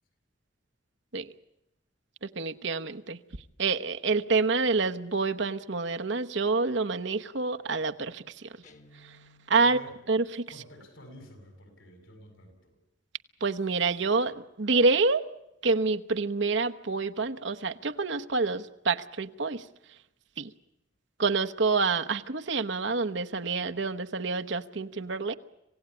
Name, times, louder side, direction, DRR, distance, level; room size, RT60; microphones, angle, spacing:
voice 1, 2.2-3.2 3.6-8.5 9.5-9.8 10.1-10.4 13.4-15.2 15.6-19.6 20.4-20.5 21.2-25.3, right 4 dB, 65° right, 8 dB, 1.1 m, -27 dB
Guitar, 8.6-9.8, left 1 dB, 40° left, 1.7 m, -57 dB
voice 2, 9.6-9.9 10.5-12.7, left 1 dB, 75° left, 6 dB, 7.4 m, -50 dB
26.5 x 17.0 x 9.8 m, 0.89 s
head